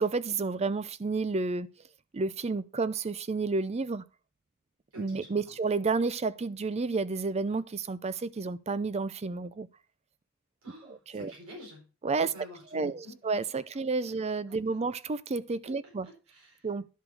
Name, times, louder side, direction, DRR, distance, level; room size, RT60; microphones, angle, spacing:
voice 1, 0.0-1.7 2.1-4.0 5.0-9.7 10.9-11.3 12.0-12.3 12.7-16.1 16.6-16.9, right 4 dB, 30° right, 0.5 m, -31 dB
voice 2, 4.9-5.4 10.6-11.8 12.2-13.3 14.5-14.8 16.0-16.7, left 1 dB, 85° right, 4.2 m, -49 dB
11.0 x 5.0 x 4.8 m
head